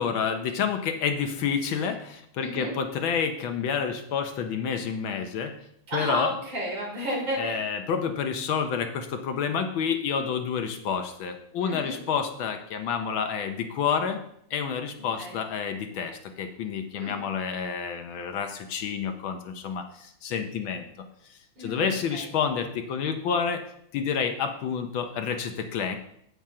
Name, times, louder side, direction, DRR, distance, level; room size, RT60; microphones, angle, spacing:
voice 1, 0.0-5.5 5.9-6.3 7.4-14.2 14.5-20.9 21.6-23.6 23.9-26.0, left 6 dB, 70° left, 6 dB, 1.5 m, -29 dB
voice 2, 2.4-2.7 5.9-7.7 11.6-12.0 15.2-15.4 16.9-17.1 21.6-22.3, equal, 60° right, -4 dB, 4.5 m, -32 dB
8.9 x 8.8 x 3.7 m, 0.71 s
omnidirectional pair, 2.4 m